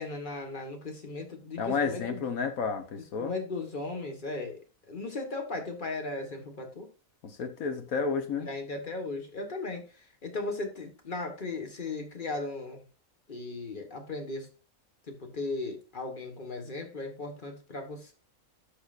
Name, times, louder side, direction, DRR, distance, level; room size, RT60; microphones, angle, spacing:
voice 1, 0.0-2.2 3.2-4.6 4.9-6.9 8.4-12.8 13.3-14.5 15.1-18.1, left 3 dB, 35° left, 1.6 m, -37 dB
voice 2, 1.6-3.3 7.2-8.5, left 5 dB, 80° left, 1.6 m, -31 dB
12.5 x 5.7 x 2.5 m
omnidirectional pair, 1.5 m